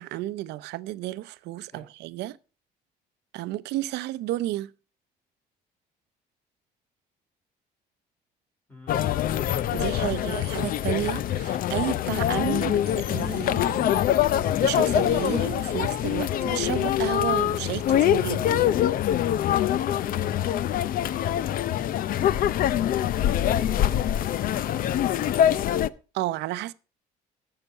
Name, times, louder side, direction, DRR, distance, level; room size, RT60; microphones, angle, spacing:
voice 1, 0.0-2.4 3.3-4.7 9.7-14.3 14.6-18.7 26.1-26.7, right 15 dB, 80° right, 0.6 m, -32 dB
voice 2, 8.7-9.3 23.3-25.7, equal, 10° left, 4.7 m, -47 dB
sound 1, 8.9-25.9, left 11 dB, 55° left, 0.5 m, -24 dB
15.0 x 5.8 x 5.4 m
cardioid pair, 110°, 17 cm